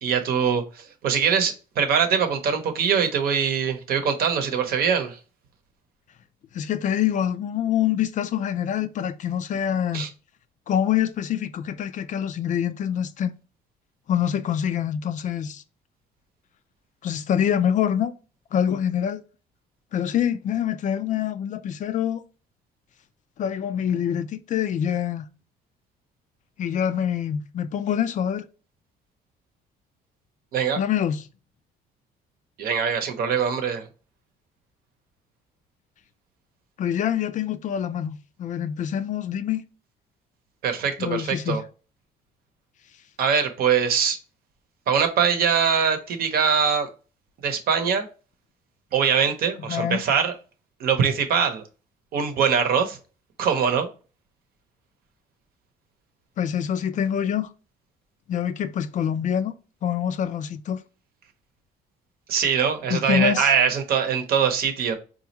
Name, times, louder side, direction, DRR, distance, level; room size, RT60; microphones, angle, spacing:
voice 1, 0.0-5.2 9.9-10.1 30.5-30.8 32.6-33.8 40.6-41.6 43.2-44.2 44.9-46.9 47.4-48.1 48.9-50.3 50.8-51.6 52.1-53.0 53.4-53.9 62.3-64.9, right 7 dB, 65° right, 0.8 m, -22 dB
voice 2, 6.5-10.0 10.7-13.3 14.1-15.6 17.0-18.1 18.5-19.2 19.9-22.2 23.4-25.2 26.6-28.4 30.8-31.3 36.8-39.6 41.0-41.6 49.7-50.0 56.4-57.5 58.3-59.5 59.8-60.8 62.9-63.5, left 9 dB, 50° left, 0.4 m, -25 dB
4.1 x 2.4 x 2.9 m
cardioid pair, 110°, 17 cm